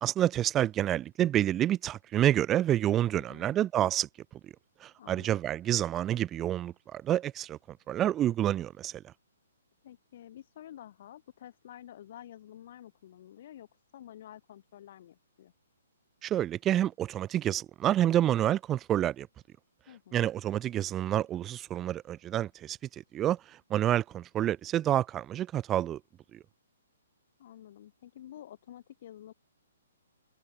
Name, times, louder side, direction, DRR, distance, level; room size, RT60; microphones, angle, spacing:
voice 1, 0.0-4.1 4.8-9.0 16.2-19.3 20.1-22.8 23.1-26.0 26.3-26.4, right 12 dB, 20° right, 0.9 m, -28 dB
voice 2, 3.1-3.6 5.0-5.3 9.8-15.5 19.9-20.3 27.4-29.3, left 11 dB, 50° left, 4.0 m, -50 dB
hypercardioid pair, 135°, 0 cm